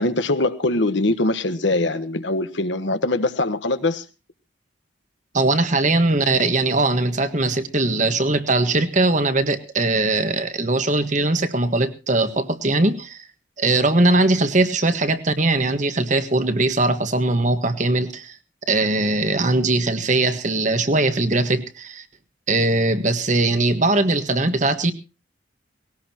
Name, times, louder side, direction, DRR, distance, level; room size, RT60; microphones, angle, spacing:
voice 1, 0.0-4.0, left 2 dB, 75° left, 1.3 m, -22 dB
voice 2, 5.3-13.2 13.6-18.4 18.7-22.0 22.5-24.9, right 2 dB, 40° right, 1.5 m, -20 dB
20.0 x 17.5 x 2.9 m
head